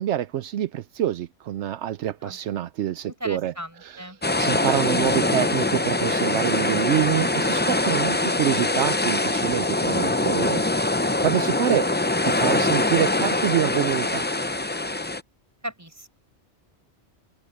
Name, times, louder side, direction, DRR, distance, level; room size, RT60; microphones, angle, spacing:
voice 1, 0.0-3.5 4.4-10.6 11.2-11.9 12.2-14.3, right 12 dB, 80° right, 0.9 m, -26 dB
voice 2, 3.0-4.2 11.1-11.7 15.6-16.2, equal, 15° right, 4.6 m, -37 dB
sound 1, 4.2-15.2, left 2 dB, 15° left, 0.4 m, -23 dB
open air
omnidirectional pair, 1.2 m